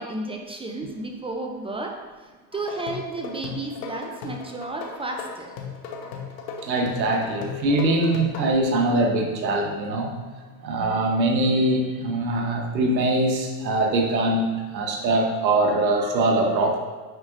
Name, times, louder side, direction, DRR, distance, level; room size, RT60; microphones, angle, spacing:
voice 1, 0.0-5.5, right 2 dB, 10° right, 2 dB, 0.4 m, -33 dB
sound 1, 2.5-8.5, left 6 dB, 85° left, 1.2 m, -36 dB
voice 2, 6.6-10.1 10.6-16.8, right 2 dB, 90° right, 2 dB, 1.2 m, -22 dB
9.4 x 4.8 x 2.6 m, 1.3 s
hypercardioid pair, 100°, 50 cm